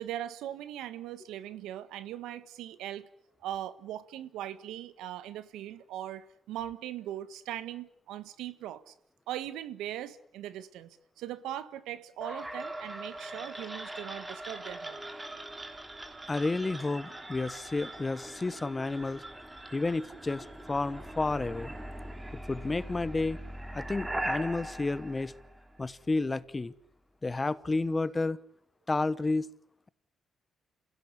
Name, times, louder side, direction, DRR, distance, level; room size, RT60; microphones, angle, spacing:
voice 1, 0.0-3.1 3.4-8.9 9.3-15.0, right 12 dB, 90° right, 1.5 m, -40 dB
sound 1, 12.2-26.1, right 1 dB, 15° right, 3.4 m, -41 dB
voice 2, 16.3-19.2 19.7-21.7 22.5-23.4 23.7-25.3 25.8-26.7 27.2-28.4 28.9-29.5, left 3 dB, 20° left, 1.1 m, -31 dB
27.5 x 16.5 x 9.9 m
cardioid pair, 90°, 0 cm